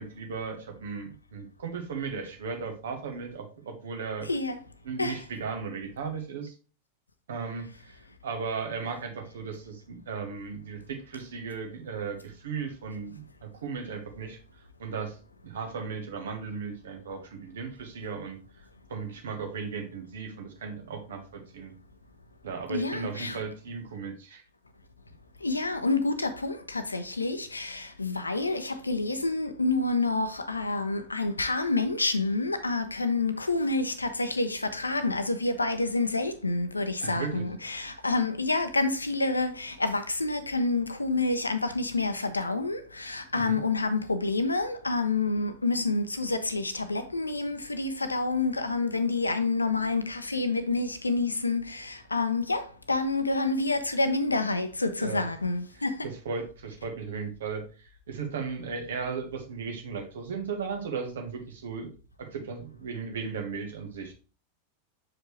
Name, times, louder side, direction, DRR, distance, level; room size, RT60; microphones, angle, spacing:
voice 1, 0.0-4.3 4.8-6.5 7.3-14.4 14.8-15.2 15.4-18.4 18.9-21.7 22.4-24.4 37.0-37.4 43.3-43.6 55.0-55.3 56.0-61.9 62.2-64.1, right 5 dB, 65° right, 1.3 m, -36 dB
voice 2, 22.7-23.4 25.4-51.8 52.1-52.6 52.9-55.9, left 3 dB, 80° left, 0.7 m, -28 dB
6.4 x 4.9 x 3.2 m
figure-of-eight pair, 90°, 0 cm